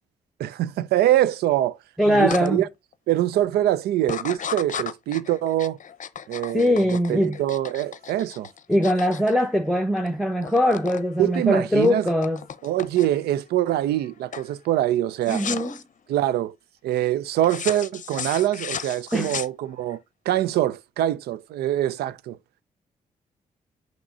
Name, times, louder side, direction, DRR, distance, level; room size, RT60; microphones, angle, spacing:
voice 1, 0.4-1.8 2.1-2.7 3.1-5.8 6.3-8.5 11.2-12.1 12.6-15.4 16.1-16.5 16.8-22.4, right 13 dB, 80° right, 0.5 m, -24 dB
voice 2, 2.0-2.6 6.5-7.4 8.7-12.4 15.3-15.8 19.1-19.4, equal, ahead, 0.9 m, -21 dB
sound 1, 2.3-2.5 2.9-3.3 4.0-10.1 10.3-11.0 11.3-13.3 13.8-14.1 14.3-14.5 15.2-15.8 17.4-19.9, left 8 dB, 50° left, 0.7 m, -35 dB
6.0 x 3.0 x 5.3 m
supercardioid pair, 45°, 16 cm